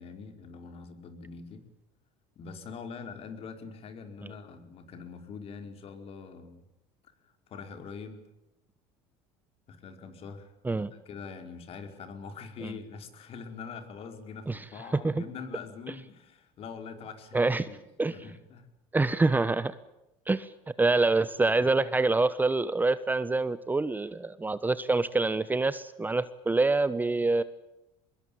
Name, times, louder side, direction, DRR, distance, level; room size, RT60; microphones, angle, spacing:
voice 1, 0.0-1.6 2.3-6.6 7.5-8.2 9.7-10.5 10.8-17.4 17.6-17.8 18.1-18.7, left 5 dB, 50° left, 7 dB, 5.1 m, -43 dB
voice 2, 17.3-17.7 18.0-18.1 18.9-19.7 20.3-20.5 20.8-27.4, right 3 dB, 15° right, 15 dB, 1.1 m, -26 dB
25.0 x 21.5 x 8.9 m, 0.92 s
supercardioid pair, 100°, 13 cm